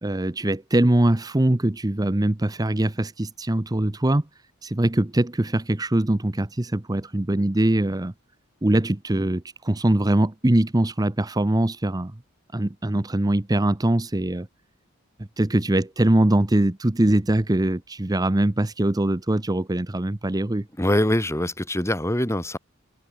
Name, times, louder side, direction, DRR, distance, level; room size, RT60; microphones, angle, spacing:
voice 1, 0.0-8.1 8.6-12.2 12.5-14.5 15.2-20.7, right 1 dB, 20° right, 0.7 m, -22 dB
voice 2, 20.8-22.6, left 1 dB, 15° left, 4.0 m, -23 dB
head